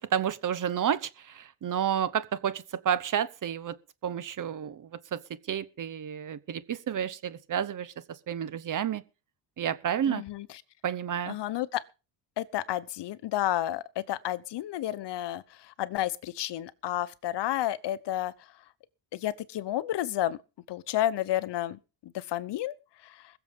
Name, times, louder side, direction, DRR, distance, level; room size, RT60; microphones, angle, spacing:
voice 1, 0.0-3.8 4.0-5.2 5.5-9.0 9.6-10.2 10.8-11.4, right 9 dB, 45° right, 1.1 m, -30 dB
voice 2, 10.1-10.5 11.3-11.8 12.4-15.4 15.8-18.3 19.1-20.4 20.7-21.8 22.1-22.7, left 13 dB, 65° left, 1.0 m, -31 dB
21.5 x 7.2 x 5.4 m
cardioid pair, 135°, 45 cm